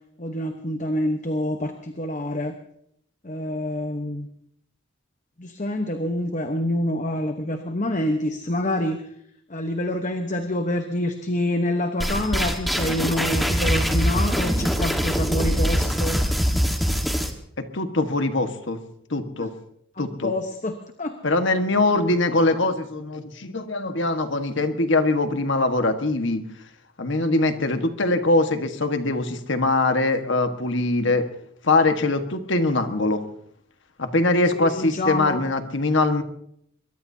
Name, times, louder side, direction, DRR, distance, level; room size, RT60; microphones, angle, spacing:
voice 1, 0.2-2.6 3.2-4.3 5.4-9.0 9.5-16.2 20.0-21.2 22.3-22.4 34.6-35.4, left 1 dB, 40° left, 6 dB, 1.1 m, -27 dB
sound 1, 12.0-17.3, equal, ahead, 1.5 m, -23 dB
voice 2, 17.6-18.8 19.1-19.5 20.0-20.3 21.2-26.4 27.0-31.3 31.6-33.2 34.0-36.2, left 2 dB, 65° left, 7 dB, 1.5 m, -22 dB
22.5 x 22.5 x 2.8 m, 0.70 s
head